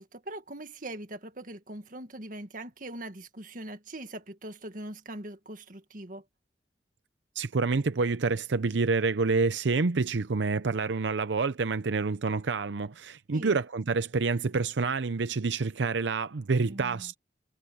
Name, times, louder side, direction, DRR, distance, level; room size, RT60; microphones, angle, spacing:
voice 1, 0.0-6.2 13.3-13.6 16.7-17.1, right 1 dB, 50° right, 1.9 m, -41 dB
voice 2, 7.4-17.2, right 4 dB, 90° right, 0.6 m, -28 dB
head